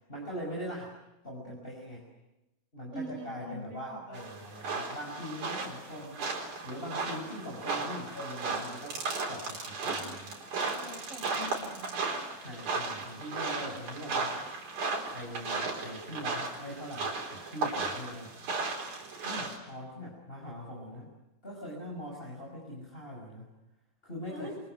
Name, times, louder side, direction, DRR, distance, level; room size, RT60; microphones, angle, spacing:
voice 1, 0.1-0.9 1.2-2.1 2.7-6.2 6.6-10.4 12.4-14.3 15.1-18.3 19.2-21.1 21.4-23.4 24.0-24.5, equal, 15° left, -2 dB, 5.8 m, -42 dB
voice 2, 2.9-4.2 10.8-12.1 24.3-24.6, equal, 20° right, 1 dB, 6.7 m, -43 dB
sound 1, 4.1-19.6, right 3 dB, 60° right, 5.9 m, -35 dB
28.5 x 25.0 x 8.0 m, 0.94 s
omnidirectional pair, 4.2 m